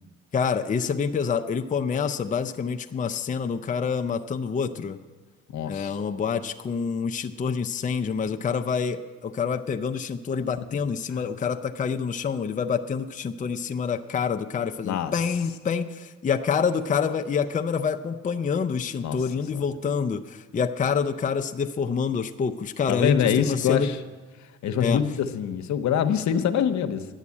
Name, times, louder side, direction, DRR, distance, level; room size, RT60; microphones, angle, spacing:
voice 1, 0.3-5.0 5.7-23.9 24.8-25.0, left 6 dB, 25° left, 5 dB, 0.5 m, -27 dB
voice 2, 5.5-6.0 11.2-11.3 14.8-15.1 19.0-19.2 19.5-19.6 22.9-24.0 24.6-27.1, left 8 dB, 70° left, 8 dB, 0.8 m, -24 dB
10.5 x 7.4 x 8.4 m, 1.4 s
cardioid pair, 90°, 30 cm